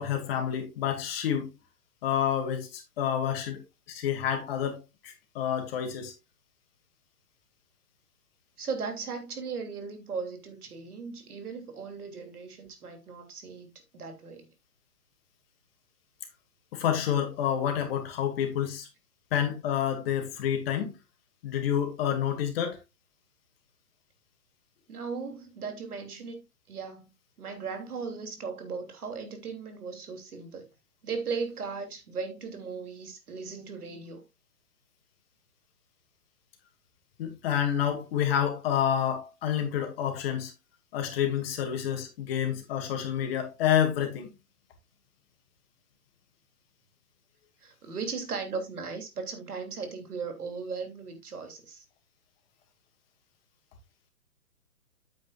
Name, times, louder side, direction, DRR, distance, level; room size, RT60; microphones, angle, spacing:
voice 1, 0.0-1.5 2.0-3.6 3.9-6.1 16.7-18.9 19.3-21.0 21.4-22.8 37.2-40.5 40.9-44.3, left 9 dB, 40° left, 2.3 m, -28 dB
voice 2, 8.6-14.5 24.9-26.4 26.7-27.1 27.4-30.7 31.0-34.2 47.6-51.8, right 5 dB, 70° right, 3.0 m, -37 dB
8.8 x 8.7 x 2.5 m
figure-of-eight pair, 130°, 47 cm